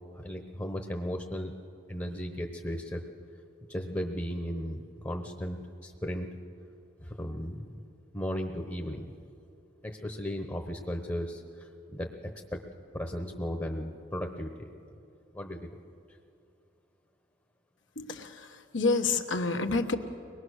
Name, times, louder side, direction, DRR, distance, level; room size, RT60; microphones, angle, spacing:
voice 1, 0.0-1.5 1.9-3.0 3.7-6.3 7.0-7.8 8.1-9.1 9.8-12.6 12.9-14.7 15.3-15.7, equal, 15° left, 4 dB, 1.0 m, -36 dB
voice 2, 17.9-20.0, left 3 dB, 75° left, 6 dB, 1.3 m, -29 dB
23.0 x 20.5 x 6.5 m, 2.7 s
head